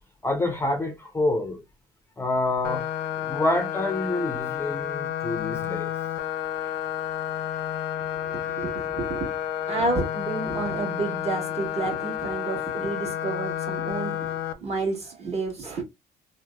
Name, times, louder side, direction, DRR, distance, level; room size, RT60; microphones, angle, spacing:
voice 1, 0.2-1.6 2.2-2.9 3.2-5.9 6.6-6.7, left 2 dB, 15° left, 0.4 m, -27 dB
sound 1, 2.6-14.5, left 10 dB, 80° left, 0.4 m, -30 dB
voice 2, 8.2-9.3 9.7-14.3 14.6-15.8, right 3 dB, 40° right, 1.3 m, -30 dB
2.7 x 2.1 x 2.2 m
cardioid pair, 110°, 17 cm